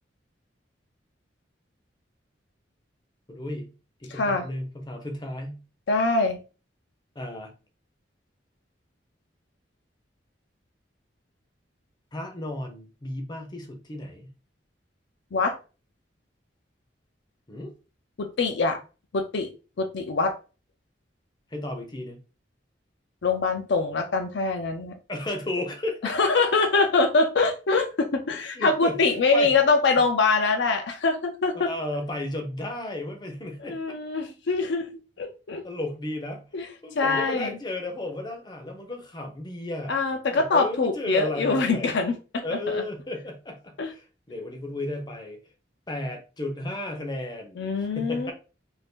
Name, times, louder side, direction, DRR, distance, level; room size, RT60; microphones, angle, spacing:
voice 1, 3.3-3.7 4.0-5.6 7.2-7.5 12.1-14.3 17.5-17.7 21.5-22.2 25.1-26.1 28.5-29.0 29.3-29.5 31.5-33.8 35.6-36.5 36.8-40.0 40.3-41.9 42.4-45.4 45.9-48.3, left 1 dB, 25° left, 0.6 m, -34 dB
voice 2, 4.1-4.5 5.9-6.4 15.3-15.6 18.2-18.8 19.1-19.5 19.8-20.3 23.2-24.9 26.0-31.7 33.6-34.8 35.2-35.6 36.5-36.7 37.0-37.6 39.9-42.8 43.8-43.9 47.6-48.3, left 3 dB, 65° left, 0.5 m, -24 dB
2.6 x 2.5 x 3.5 m
head